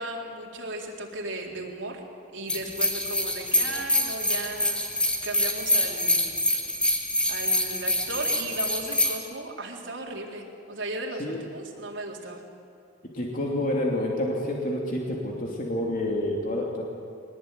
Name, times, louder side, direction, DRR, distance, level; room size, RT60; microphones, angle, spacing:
voice 1, 0.0-2.0 2.3-4.9 5.2-6.3 7.3-12.4, right 2 dB, 70° right, -1 dB, 4.0 m, -36 dB
sound 1, 2.5-9.2, left 1 dB, 5° left, 2.2 m, -26 dB
voice 2, 13.1-16.8, left 1 dB, 45° left, -1 dB, 2.9 m, -28 dB
23.0 x 19.5 x 9.3 m, 2.5 s
head